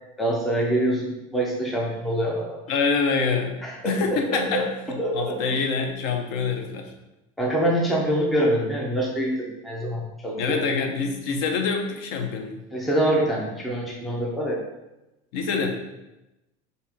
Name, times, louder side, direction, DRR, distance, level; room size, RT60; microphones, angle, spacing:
voice 1, 0.2-2.6 3.6-3.9 4.3-4.6 5.0-5.6 7.4-10.6 12.7-14.6, right 1 dB, ahead, -4 dB, 0.4 m, -25 dB
voice 2, 2.7-3.6 3.8-6.9 10.4-12.6 15.3-15.7, left 5 dB, 50° left, 3 dB, 0.6 m, -26 dB
5.3 x 2.7 x 3.4 m, 0.96 s
cardioid pair, 175°, 18 cm